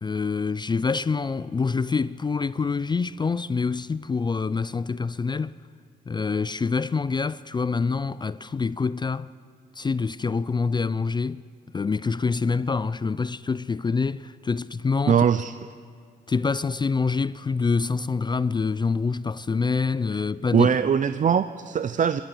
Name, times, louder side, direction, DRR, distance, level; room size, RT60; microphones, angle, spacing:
voice 1, 0.0-5.6 6.1-9.3 9.8-11.4 11.7-15.2 16.3-20.7, left 4 dB, 20° left, 0.4 m, -26 dB
voice 2, 15.1-15.5 20.5-22.2, right 7 dB, 40° right, 0.6 m, -21 dB
26.0 x 13.0 x 7.9 m
cardioid pair, 90°, 20 cm